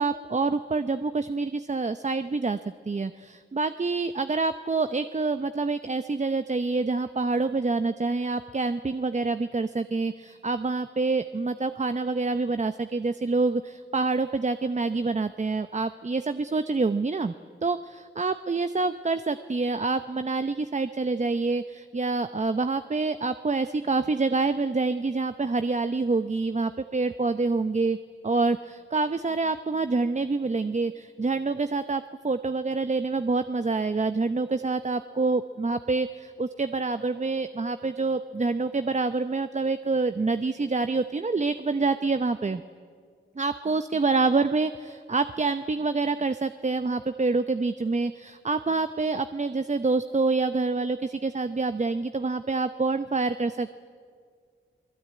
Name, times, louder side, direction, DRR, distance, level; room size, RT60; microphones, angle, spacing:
voice 1, 0.0-2.6 2.9-17.3 17.6-28.0 28.2-42.6 43.4-53.8, right 3 dB, 35° right, 11 dB, 0.8 m, -27 dB
29.5 x 19.5 x 9.3 m, 2.1 s
cardioid pair, 55°, 21 cm